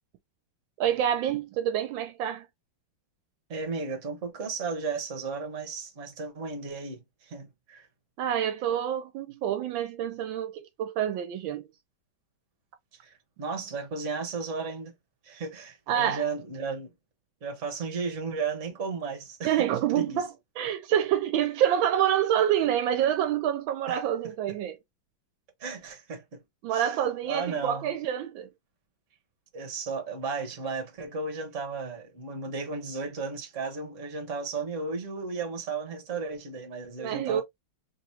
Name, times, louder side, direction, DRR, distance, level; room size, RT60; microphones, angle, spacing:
voice 1, 0.8-2.5 8.2-11.7 15.9-16.3 19.4-20.3 20.6-24.8 26.6-28.5 37.0-37.4, right 10 dB, 80° right, 1.3 m, -27 dB
voice 2, 3.5-7.9 13.0-14.9 15.2-16.9 17.4-19.6 19.9-20.2 23.9-24.0 25.6-26.4 26.7-26.9 27.3-27.9 29.5-37.4, right 4 dB, 45° right, 1.3 m, -34 dB
3.6 x 2.9 x 2.7 m
omnidirectional pair, 2.1 m